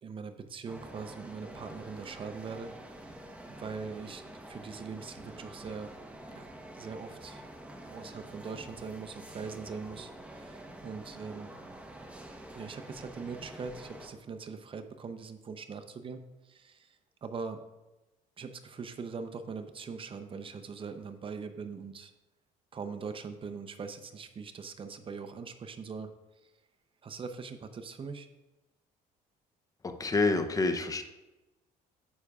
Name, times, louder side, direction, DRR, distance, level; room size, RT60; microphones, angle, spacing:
voice 1, 0.0-2.7 3.0-3.2 3.5-5.9 6.3-7.4 7.9-11.5 12.5-17.0 17.2-17.6 18.4-22.1 22.7-26.1 27.0-28.3, right 5 dB, 30° right, 8 dB, 0.7 m, -42 dB
sound 1, 0.7-14.1, right 1 dB, 10° right, 1.0 m, -47 dB
voice 2, 29.8-31.0, left 3 dB, 20° left, 7 dB, 0.7 m, -28 dB
9.5 x 6.5 x 2.4 m, 1.1 s
cardioid pair, 110°, 17 cm